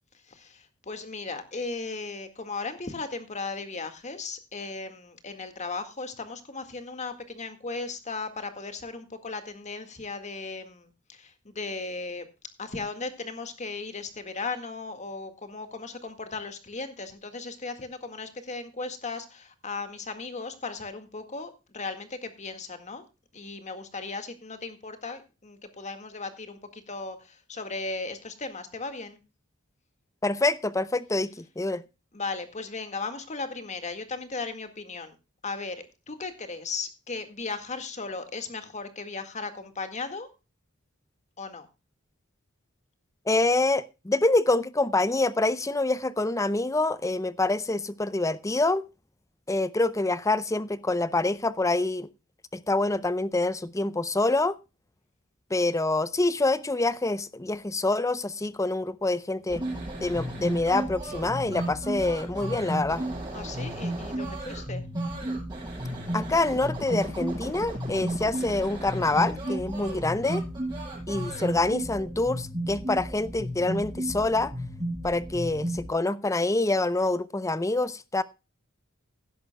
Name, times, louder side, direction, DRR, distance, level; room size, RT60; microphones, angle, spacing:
voice 1, 0.2-12.3 12.6-23.0 23.3-29.2 32.1-35.2 35.4-40.3 41.4-41.7 63.3-64.8, left 3 dB, 35° left, 1.9 m, -36 dB
voice 2, 30.2-31.8 43.3-48.8 49.5-52.1 52.5-54.6 55.5-59.6 60.0-63.1 66.1-70.4 71.1-74.5 75.0-78.2, left 2 dB, 15° left, 0.6 m, -26 dB
sound 1, 59.5-75.9, right 1 dB, 20° right, 7.7 m, -33 dB
17.0 x 11.0 x 2.3 m
head